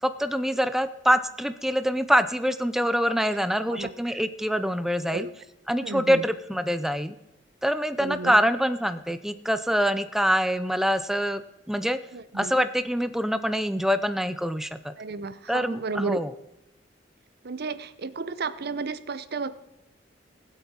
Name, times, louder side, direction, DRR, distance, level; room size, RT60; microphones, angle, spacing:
voice 1, 0.0-5.3 5.7-7.2 7.6-11.4 11.7-12.0 12.3-14.9 15.5-16.3, equal, ahead, 10 dB, 0.5 m, -25 dB
voice 2, 5.8-6.3 8.0-8.4 12.1-12.5 15.0-16.2 17.4-19.6, right 4 dB, 60° right, 14 dB, 0.7 m, -33 dB
19.0 x 8.2 x 4.3 m, 0.90 s
head